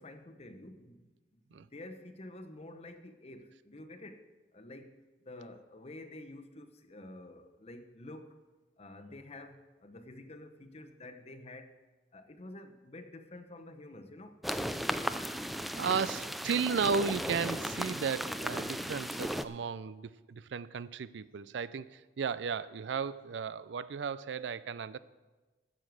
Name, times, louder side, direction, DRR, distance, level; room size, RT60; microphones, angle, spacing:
voice 1, 0.0-8.4 8.8-11.8 12.1-14.4, left 1 dB, 35° left, 8 dB, 0.9 m, -49 dB
sound 1, 14.4-19.4, equal, ahead, 0.3 m, -36 dB
voice 2, 15.7-25.0, right 6 dB, 75° right, 17 dB, 0.4 m, -34 dB
12.0 x 6.5 x 7.7 m, 1.2 s
head